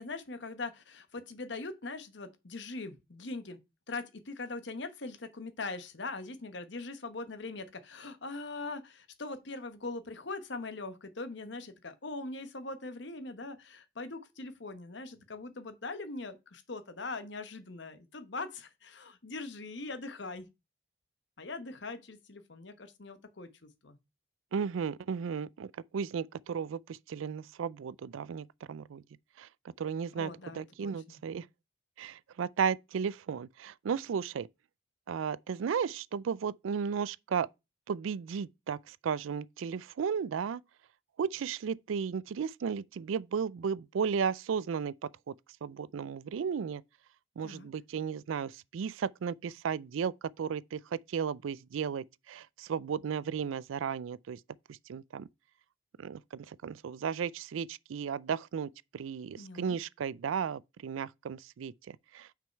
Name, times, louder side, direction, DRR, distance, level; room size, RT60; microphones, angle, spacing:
voice 1, 0.0-3.6 3.9-20.5 21.4-24.0 30.1-31.2 47.4-47.7 59.4-59.8, left 3 dB, 60° left, 1.0 m, -41 dB
voice 2, 24.5-29.0 29.4-29.5 29.8-31.5 32.0-34.5 35.1-37.5 37.9-40.6 41.2-45.3 45.6-46.8 47.4-54.4 54.7-55.3 56.0-62.3, right 6 dB, 80° right, 0.4 m, -34 dB
6.2 x 5.1 x 4.5 m
head